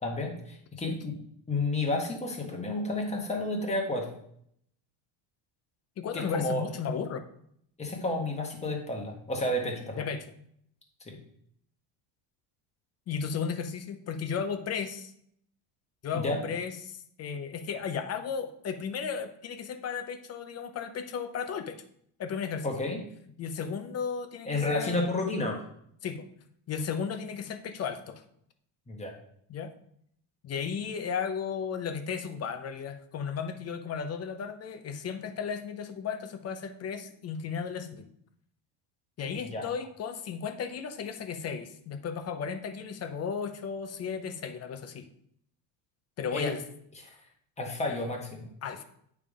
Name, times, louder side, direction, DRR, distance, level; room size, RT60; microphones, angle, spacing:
voice 1, 0.0-1.1 1.5-4.1 6.1-6.7 7.8-10.0 11.0-11.2 16.1-16.4 22.6-23.0 24.4-25.6 28.9-29.1 39.4-39.7 46.3-46.5 47.0-47.2 47.6-48.5, left 2 dB, 15° left, 0 dB, 1.4 m, -31 dB
voice 2, 6.0-7.2 10.0-10.2 13.1-15.1 16.0-21.8 22.2-22.7 23.4-25.1 26.0-26.2 26.7-28.2 29.5-29.7 30.4-38.1 39.2-45.1 46.2-46.6 48.6-48.8, left 6 dB, 35° left, 8 dB, 0.6 m, -34 dB
9.0 x 3.6 x 4.9 m, 0.69 s
cardioid pair, 150°, 47 cm